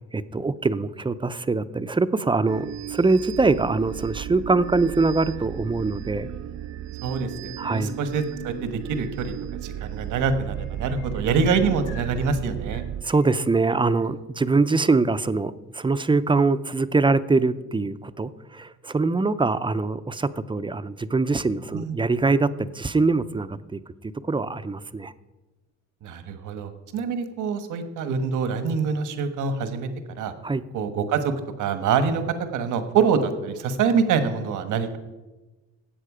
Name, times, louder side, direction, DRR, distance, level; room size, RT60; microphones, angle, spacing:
voice 1, 0.1-6.3 7.6-7.9 13.0-23.8 24.2-25.1 30.4-30.6, right 3 dB, 15° right, 13 dB, 0.6 m, -23 dB
sound 1, 2.5-13.0, right 11 dB, 60° right, 0.6 m, -35 dB
voice 2, 7.0-9.3 9.6-12.8 21.7-22.0 26.0-29.9 30.1-30.3 30.7-32.2 32.5-35.0, right 5 dB, 85° right, 9 dB, 1.4 m, -25 dB
sound 2, 9.4-9.7 10.0-14.1 15.7-15.8, left 4 dB, 85° left, 5.2 m, -51 dB
17.0 x 7.8 x 5.0 m, 1.1 s
cardioid pair, 90°, 30 cm